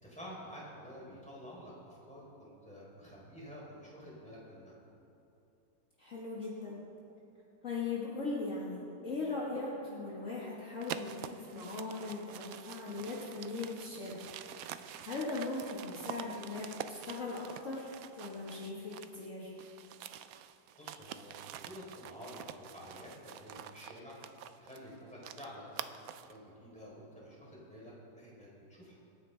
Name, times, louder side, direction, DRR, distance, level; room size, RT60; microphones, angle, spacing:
voice 1, 0.0-4.7 20.8-24.2 24.5-25.9 26.3-29.0, equal, 5° left, -6 dB, 3.8 m, -50 dB
voice 2, 6.0-6.8 7.6-14.2 14.6-17.9 18.2-19.6, left 3 dB, 45° left, -6 dB, 2.0 m, -39 dB
sound 1, 10.8-19.3 19.6-26.4, right 10 dB, 70° right, 0.9 m, -47 dB
26.0 x 9.3 x 3.4 m, 2.7 s
omnidirectional pair, 1.8 m